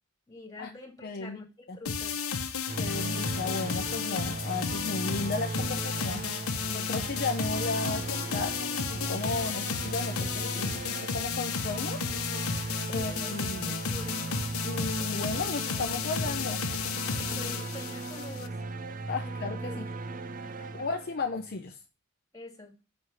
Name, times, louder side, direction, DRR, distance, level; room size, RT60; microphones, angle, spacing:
voice 1, 0.3-2.2 12.9-14.3 17.3-18.6 19.2-19.9 20.3-20.9 22.3-22.8, left 2 dB, 15° left, 1 dB, 2.4 m, -47 dB
voice 2, 1.0-1.4 1.7-1.8 2.8-6.3 6.7-12.0 12.3-12.4 12.9-13.8 14.6-16.6 19.1-19.9 20.7-21.8, left 3 dB, 50° left, 4 dB, 0.7 m, -34 dB
sound 1, 1.9-18.5, left 6 dB, 80° left, 0.9 m, -33 dB
sound 2, 2.7-21.6, right 3 dB, 40° right, 0.6 m, -37 dB
6.3 x 4.7 x 5.4 m, 0.29 s
head